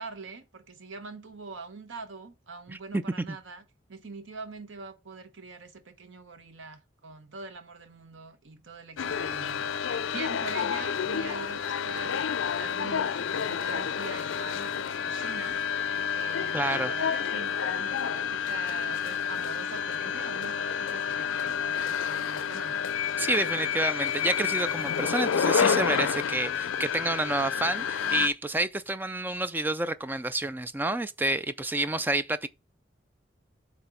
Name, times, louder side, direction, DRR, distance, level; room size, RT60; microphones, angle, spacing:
voice 1, 0.0-3.6 3.9-22.8, right 4 dB, 80° right, 1.0 m, -43 dB
voice 2, 2.7-3.0 16.5-16.9 23.2-32.5, right 2 dB, 10° right, 0.3 m, -29 dB
sound 1, 9.0-28.3, left 7 dB, 90° left, 0.4 m, -29 dB
7.9 x 3.0 x 5.8 m
head